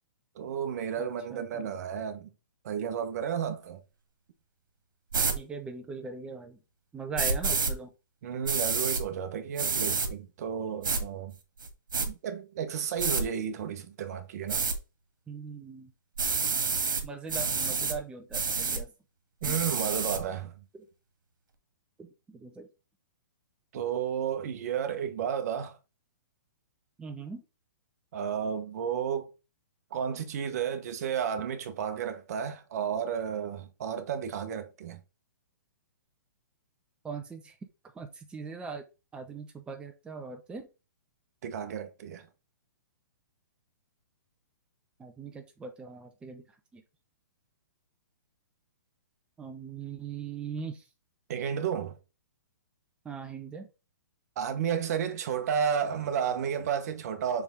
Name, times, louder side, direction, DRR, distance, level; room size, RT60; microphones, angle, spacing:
voice 1, 0.3-2.3 2.6-3.8 8.2-11.3 12.1-14.7 19.4-20.6 23.7-25.8 28.1-29.3 29.9-35.0 41.4-42.3 51.3-52.0 54.4-57.4, right 8 dB, 50° right, 1.2 m, -32 dB
voice 2, 1.0-1.7 5.3-6.6 6.9-7.9 15.3-15.9 16.2-16.3 17.0-18.9 19.4-19.7 20.7-20.8 22.0-22.7 27.0-27.4 37.0-37.6 37.9-38.8 39.1-40.7 45.0-46.4 46.7-46.8 49.4-50.8 53.0-53.7, right 5 dB, 10° right, 0.8 m, -40 dB
sound 1, 5.1-5.4 7.2-7.7 8.5-9.0 9.6-10.1 10.8-11.0 11.6-12.1 13.0-13.2 14.5-14.8 16.2-17.0 17.3-18.0 18.3-18.8 19.4-20.2, right 5 dB, 85° right, 1.8 m, -28 dB
7.1 x 3.6 x 3.8 m
hypercardioid pair, 145°, 11 cm